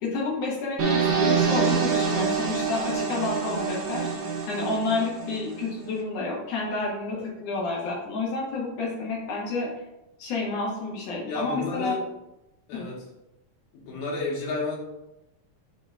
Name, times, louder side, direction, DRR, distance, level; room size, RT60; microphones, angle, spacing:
voice 1, 0.0-4.1 4.5-9.7 10.2-12.0 12.7-12.9, left 3 dB, 75° left, -3 dB, 1.5 m, -30 dB
sound 1, 0.8-5.7, right 5 dB, 75° right, 2.2 m, -26 dB
voice 2, 11.2-12.0 12.7-13.1 13.7-14.8, left 3 dB, 90° left, -3 dB, 2.9 m, -31 dB
6.4 x 3.7 x 2.2 m, 0.93 s
omnidirectional pair, 4.1 m